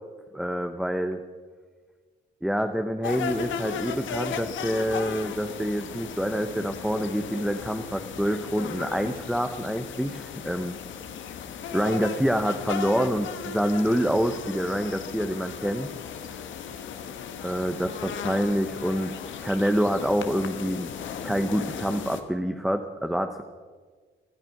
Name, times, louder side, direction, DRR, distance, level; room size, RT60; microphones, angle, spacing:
voice 1, 0.3-1.2 2.4-10.8 11.7-15.9 17.4-19.1 19.4-20.9 21.2-23.4, equal, ahead, 6 dB, 0.9 m, -27 dB
sound 1, 3.0-22.2, left 7 dB, 75° left, 1.3 m, -36 dB
18.5 x 12.5 x 6.0 m, 1.5 s
cardioid pair, 90°, 20 cm